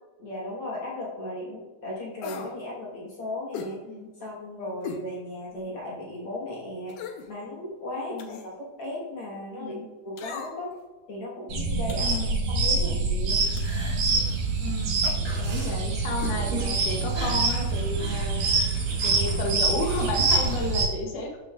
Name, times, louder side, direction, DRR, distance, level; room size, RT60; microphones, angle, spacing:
voice 1, 0.2-3.8 4.2-7.0 7.3-10.7 11.1-12.2 12.5-13.5, left 1 dB, 55° left, -5 dB, 1.6 m, -36 dB
sound 1, 2.2-2.6 3.5-3.8 4.8-5.1 5.6-5.7 6.9-7.3 8.2-8.5 10.2-10.7 11.9-12.3 13.6-13.8 15.0-15.2 16.2-16.4 16.7-16.8, left 6 dB, 75° left, 2.0 m, -38 dB
voice 2, 9.5-9.9 12.0-12.3 14.6-15.1 15.4-18.5 19.0-21.4, left 2 dB, 90° left, 1 dB, 1.4 m, -32 dB
sound 2, 11.5-20.8, right 3 dB, 85° right, 3.7 m, -25 dB
sound 3, 13.3-20.7, right 1 dB, 35° right, 2.1 m, -41 dB
13.0 x 6.4 x 2.4 m, 1.2 s
omnidirectional pair, 4.2 m